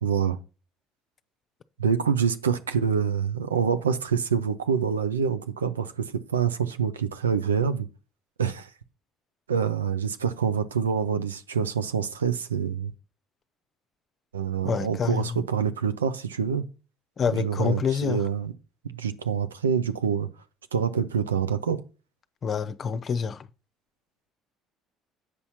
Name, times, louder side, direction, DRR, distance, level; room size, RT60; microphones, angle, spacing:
voice 1, 0.0-0.4 1.8-7.9 8.4-8.7 9.5-12.9 14.3-16.6 17.3-18.5 18.9-20.3 20.7-21.8, right 7 dB, 85° right, 0.6 m, -26 dB
voice 2, 14.6-15.4 17.2-18.2 22.4-23.5, left 6 dB, 40° left, 0.7 m, -27 dB
8.4 x 5.6 x 4.2 m
figure-of-eight pair, 55°, 0 cm